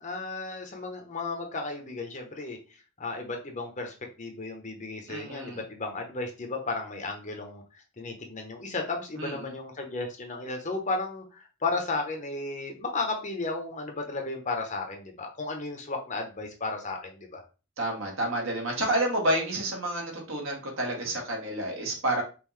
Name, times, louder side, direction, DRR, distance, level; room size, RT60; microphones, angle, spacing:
voice 1, 0.0-2.6 3.0-17.4, left 3 dB, 35° left, 3 dB, 0.9 m, -34 dB
voice 2, 5.1-5.6 9.2-9.5 17.8-22.2, right 1 dB, 65° right, 0 dB, 1.6 m, -29 dB
5.5 x 2.7 x 3.2 m, 0.33 s
head